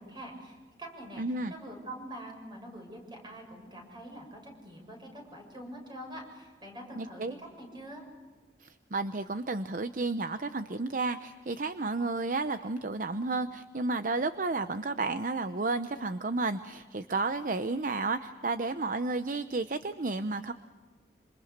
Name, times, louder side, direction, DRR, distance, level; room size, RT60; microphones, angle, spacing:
voice 1, 0.0-8.0, right 1 dB, 25° right, 2 dB, 7.1 m, -45 dB
voice 2, 1.2-1.5 7.0-7.3 8.6-20.5, right 3 dB, 50° right, 10 dB, 0.7 m, -32 dB
27.0 x 27.0 x 6.6 m, 1.4 s
head